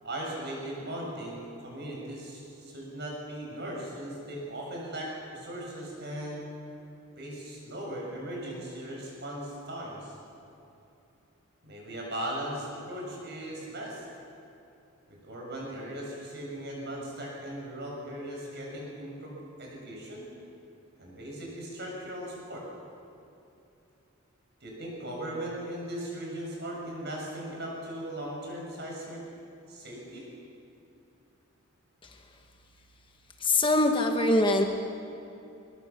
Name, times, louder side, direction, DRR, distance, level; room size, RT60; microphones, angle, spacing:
voice 1, 0.0-6.4 7.2-10.2 11.6-14.0 15.1-19.3 19.6-20.3 21.0-22.7 24.6-29.2 29.7-30.3, right 1 dB, 50° right, -2 dB, 6.9 m, -38 dB
voice 2, 33.4-34.6, left 2 dB, 25° left, 4 dB, 1.1 m, -23 dB
22.0 x 20.5 x 7.2 m, 2.8 s
head